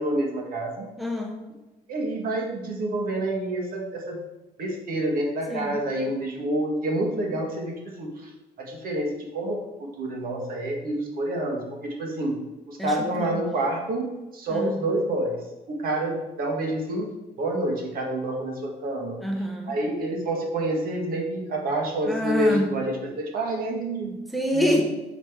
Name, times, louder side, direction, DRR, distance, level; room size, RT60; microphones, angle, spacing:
voice 1, 0.0-0.9 1.9-4.2 4.6-8.3 8.6-12.4 12.7-14.1 14.3-15.4 15.7-17.1 17.4-19.2 19.7-24.2 24.5-24.8, right 1 dB, 60° right, 0 dB, 1.8 m, -28 dB
voice 2, 1.0-1.4 5.5-5.8 12.8-13.4 14.5-14.8 19.2-19.8 22.1-22.7 24.3-24.8, equal, ahead, 1 dB, 1.0 m, -26 dB
6.0 x 5.1 x 4.6 m, 1.0 s
cardioid pair, 110°, 17 cm